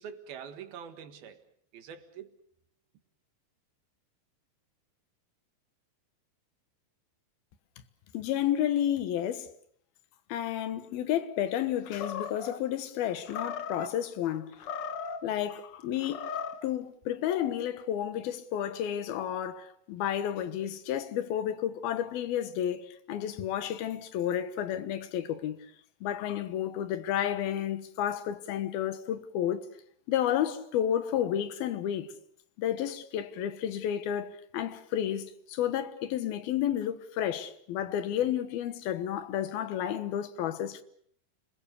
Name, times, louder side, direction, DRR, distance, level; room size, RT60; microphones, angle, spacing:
voice 1, 0.0-1.4 1.7-2.4, right 7 dB, 85° right, 3.6 m, -44 dB
voice 2, 8.1-9.5 10.3-14.6 15.2-16.3 16.6-25.6 26.0-29.7 30.1-32.1 32.6-40.8, left 10 dB, 85° left, 3.2 m, -31 dB
Animal, 11.9-12.6 13.3-13.9 14.5-15.3 16.0-16.7, left 6 dB, 55° left, 1.7 m, -37 dB
30.0 x 21.0 x 6.9 m
omnidirectional pair, 4.2 m